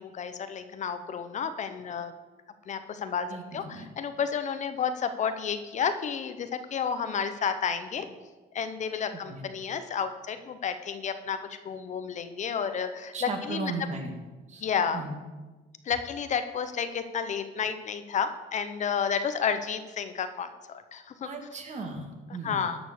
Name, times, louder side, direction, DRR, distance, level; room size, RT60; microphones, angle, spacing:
voice 1, 0.0-2.1 2.7-8.1 8.5-11.4 11.6-13.7 14.6-15.0 15.8-21.3 22.4-22.8, left 7 dB, 45° left, 10 dB, 0.8 m, -31 dB
voice 2, 3.3-3.9 9.1-9.4 13.1-14.1 14.5-14.6 14.9-15.1 21.2-22.6, right 3 dB, 45° right, 4 dB, 2.0 m, -36 dB
11.5 x 6.1 x 6.7 m, 1.2 s
cardioid pair, 110°, 17 cm